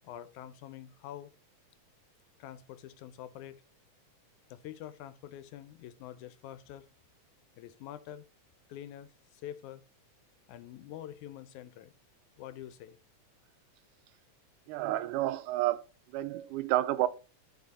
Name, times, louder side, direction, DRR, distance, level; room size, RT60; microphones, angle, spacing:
voice 1, 0.0-1.3 2.4-3.6 4.5-6.9 7.6-8.3 8.7-9.8 10.5-11.9 12.4-13.0, left 11 dB, 80° left, 2.1 m, -46 dB
voice 2, 14.7-15.8 16.1-17.1, right 15 dB, 90° right, 2.2 m, -30 dB
12.0 x 4.8 x 4.1 m
omnidirectional pair, 3.5 m